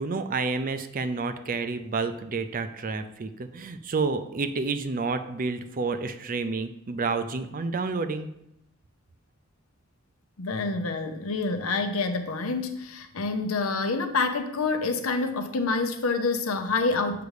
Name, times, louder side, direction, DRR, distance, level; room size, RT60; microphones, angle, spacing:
voice 1, 0.0-8.3, right 4 dB, 40° right, 9 dB, 0.5 m, -29 dB
voice 2, 10.4-17.2, left 3 dB, 80° left, 7 dB, 0.8 m, -27 dB
6.8 x 5.1 x 4.9 m, 0.80 s
head